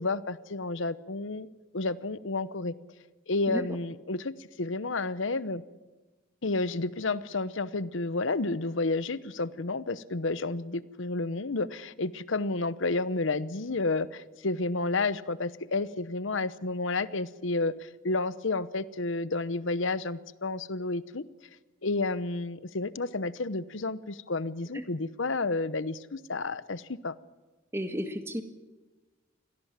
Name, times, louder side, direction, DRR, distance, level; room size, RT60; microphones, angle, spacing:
voice 1, 0.0-1.5 1.7-2.7 3.3-5.6 6.4-21.2 21.8-27.1, left 3 dB, 70° left, 16 dB, 0.9 m, -31 dB
voice 2, 27.7-28.4, equal, 10° right, 7 dB, 1.8 m, -32 dB
24.5 x 17.5 x 7.5 m, 1.2 s
head